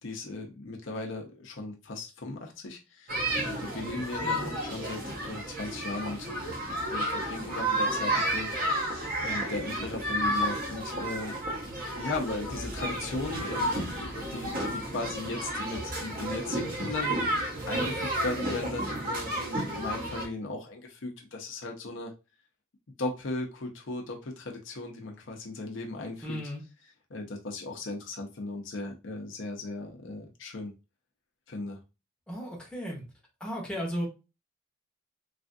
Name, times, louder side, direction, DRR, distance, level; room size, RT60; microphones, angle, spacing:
voice 1, 0.0-6.6 6.9-8.9 9.2-11.4 12.0-22.1 23.0-26.4 27.1-30.7 31.5-31.8, left 2 dB, 65° left, 1 dB, 0.7 m, -37 dB
sound 1, 3.1-20.3, right 1 dB, 45° right, 0.9 m, -32 dB
voice 2, 4.2-4.5 26.2-26.6 32.3-33.0 33.4-34.1, equal, 5° left, -2 dB, 0.8 m, -35 dB
3.3 x 2.4 x 2.6 m, 0.28 s
head